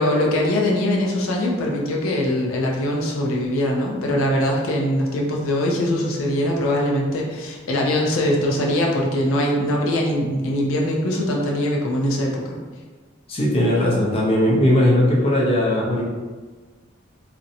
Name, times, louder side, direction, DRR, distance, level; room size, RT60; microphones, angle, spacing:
voice 1, 0.0-12.6, left 1 dB, 90° left, -1 dB, 0.5 m, -22 dB
voice 2, 13.3-16.0, left 1 dB, 30° left, -4 dB, 0.4 m, -18 dB
2.5 x 2.1 x 2.7 m, 1.4 s
head